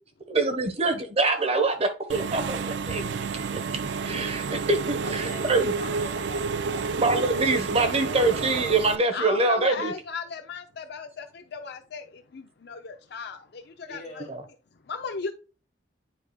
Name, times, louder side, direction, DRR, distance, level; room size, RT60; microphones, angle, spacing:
voice 1, 0.3-3.6 4.0-5.7 7.0-9.9 14.3-14.4, right 3 dB, 35° right, 1.1 m, -25 dB
Engine / Mechanisms, 2.1-9.0, right 4 dB, 70° right, 0.5 m, -30 dB
voice 2, 5.0-8.7 13.9-14.3, left 2 dB, 35° left, 2.8 m, -43 dB
voice 3, 9.1-14.3 14.8-15.3, left 5 dB, 60° left, 0.6 m, -36 dB
9.6 x 4.8 x 2.3 m
head